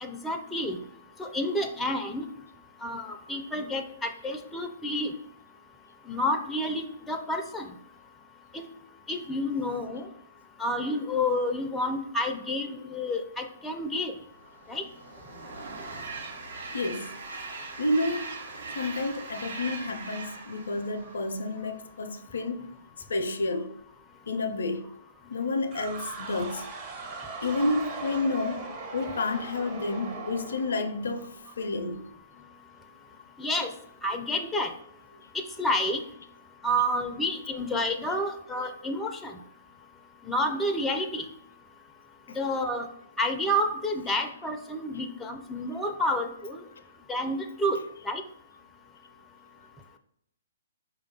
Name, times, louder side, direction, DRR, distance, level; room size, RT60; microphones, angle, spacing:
voice 1, 0.0-0.8 1.2-2.3 2.8-5.1 6.1-7.7 8.5-8.6 9.1-10.1 10.6-14.1 14.7-14.8 33.4-33.7 34.0-34.7 35.3-36.0 36.6-39.4 40.3-41.3 42.4-42.9 43.2-46.6 47.1-47.8 48.0-48.2, left 1 dB, 10° left, 0.4 m, -29 dB
Train, 14.3-21.8, right 3 dB, 65° right, 0.9 m, -40 dB
voice 2, 16.7-17.1 17.8-18.3 18.8-22.7 23.1-23.7 24.3-24.8 25.3-26.7 27.4-28.7 28.9-31.3 31.6-32.1, left 2 dB, 70° left, 0.4 m, -30 dB
sound 1, 25.7-31.5, right 3 dB, 30° right, 0.9 m, -39 dB
4.7 x 2.2 x 3.7 m
figure-of-eight pair, 125°, 0 cm